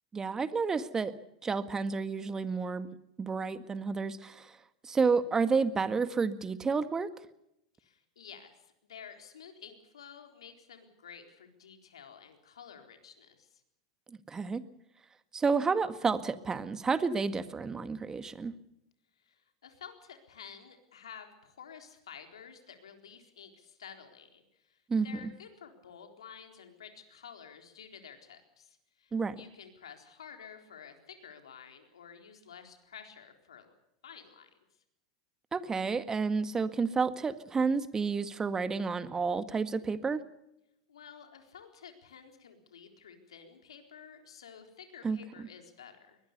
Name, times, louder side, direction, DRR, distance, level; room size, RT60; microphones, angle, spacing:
voice 1, 0.1-1.1 1.4-2.9 3.2-4.5 4.8-7.1 14.3-14.6 15.3-18.5 24.9-25.3 29.1-29.4 35.5-40.2 45.0-45.2, right 4 dB, 20° right, 12 dB, 1.8 m, -30 dB
voice 2, 7.8-13.6 19.2-33.7 34.0-34.5 40.9-46.2, left 7 dB, 80° left, 5 dB, 4.0 m, -51 dB
23.0 x 20.5 x 6.8 m, 0.83 s
hypercardioid pair, 95°, 3 cm